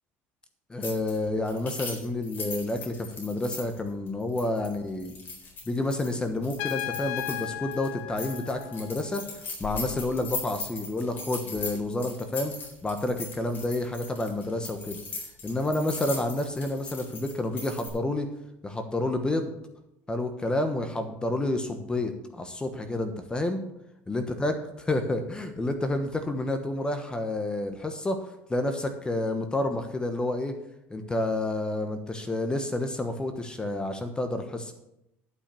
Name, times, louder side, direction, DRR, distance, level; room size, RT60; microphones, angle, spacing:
voice 1, 0.7-5.1 5.7-12.5 12.8-15.0 15.4-18.3 18.6-19.5 20.1-23.6 24.1-24.5 24.9-28.2 28.5-30.5 30.9-34.7, left 2 dB, 15° left, 7 dB, 1.1 m, -29 dB
sound 1, 0.8-1.2 1.4-7.5 7.7-7.9 8.2-17.9, left 3 dB, 40° left, 4.2 m, -39 dB
Trumpet, 6.6-9.2, left 14 dB, 85° left, 0.7 m, -36 dB
11.0 x 6.0 x 6.9 m, 0.85 s
supercardioid pair, 110°, 5 cm